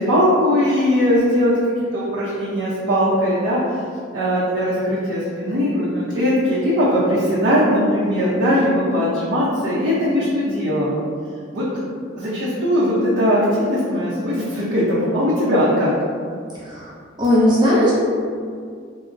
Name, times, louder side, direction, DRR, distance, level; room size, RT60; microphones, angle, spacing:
voice 1, 0.0-1.5 1.9-3.8 4.1-11.0 11.5-11.6 12.1-15.9, equal, 85° right, -10 dB, 0.7 m, -19 dB
voice 2, 17.2-17.9, left 1 dB, 20° right, -7 dB, 0.4 m, -16 dB
3.7 x 2.0 x 2.5 m, 2.2 s
head